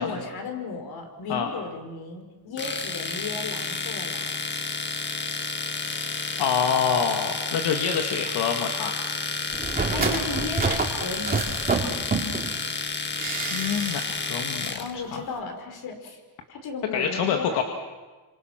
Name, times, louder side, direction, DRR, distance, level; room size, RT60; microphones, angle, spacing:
voice 1, 0.0-4.4 9.9-11.8 14.8-16.2 16.5-17.6, left 4 dB, 65° left, 5 dB, 5.2 m, -35 dB
Domestic sounds home sounds, 2.6-14.9, left 4 dB, 30° left, 1.6 m, -31 dB
voice 2, 6.4-9.0 13.5-15.2 16.9-17.6, left 7 dB, 90° left, 3 dB, 2.2 m, -26 dB
sound 1, 9.5-12.5 13.2-14.2 14.5-14.6, right 4 dB, 20° right, 2.7 m, -28 dB
30.0 x 26.5 x 6.0 m, 1.3 s
cardioid pair, 150°, 39 cm